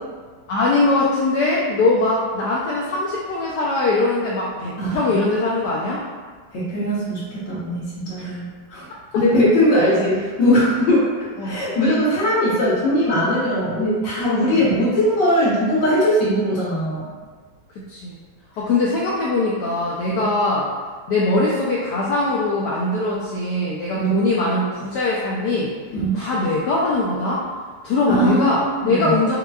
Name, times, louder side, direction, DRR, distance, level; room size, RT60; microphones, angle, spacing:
voice 1, 0.5-6.0 8.2-8.4 9.1-9.2 11.4-11.5 14.5-14.7 17.9-18.2 18.6-20.7 21.1-25.7 26.1-27.4 27.8-29.4, left 2 dB, 80° left, -5 dB, 0.9 m, -21 dB
voice 2, 6.5-8.4 8.7-8.9 9.1-11.1 11.4-17.0 20.1-20.2 23.9-24.1 25.9-26.2 28.2-29.2, equal, 65° left, -9 dB, 1.6 m, -20 dB
5.4 x 2.2 x 2.3 m, 1.5 s
omnidirectional pair, 2.3 m